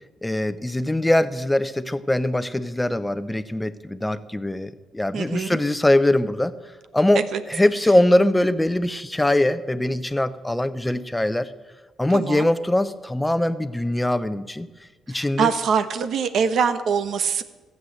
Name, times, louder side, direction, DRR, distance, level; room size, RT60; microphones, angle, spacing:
voice 1, 0.2-6.5 6.9-11.5 12.0-14.7 15.1-15.5, left 1 dB, 10° left, 13 dB, 0.8 m, -22 dB
voice 2, 5.1-5.6 7.3-7.4 12.1-12.5 15.1-17.4, right 6 dB, 65° right, 11 dB, 1.1 m, -23 dB
14.5 x 8.0 x 7.9 m, 1.3 s
cardioid pair, 90°, 0 cm